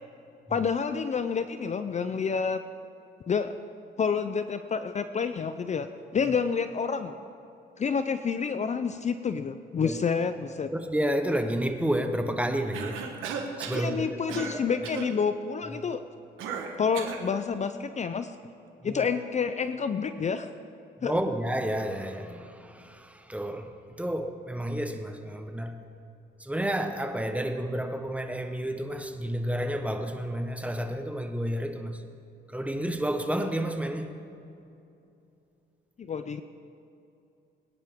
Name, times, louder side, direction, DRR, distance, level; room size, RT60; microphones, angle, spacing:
voice 1, 0.5-2.6 3.3-3.5 4.0-5.9 6.1-7.2 7.8-10.7 13.8-16.0 16.8-18.3 18.8-20.5 21.0-21.1 36.0-36.4, left 6 dB, 35° left, 10 dB, 0.5 m, -28 dB
voice 2, 10.7-13.0 13.6-14.8 18.8-19.0 21.0-23.7 24.0-25.7 26.4-32.0 32.5-34.2, right 1 dB, 5° right, 6 dB, 1.1 m, -30 dB
Cough, 12.7-13.9 14.3-14.6 14.8-15.1 16.4-17.3, right 6 dB, 90° right, 1.4 m, -35 dB
21.5 x 10.5 x 3.7 m, 2.7 s
cardioid pair, 90°, 20 cm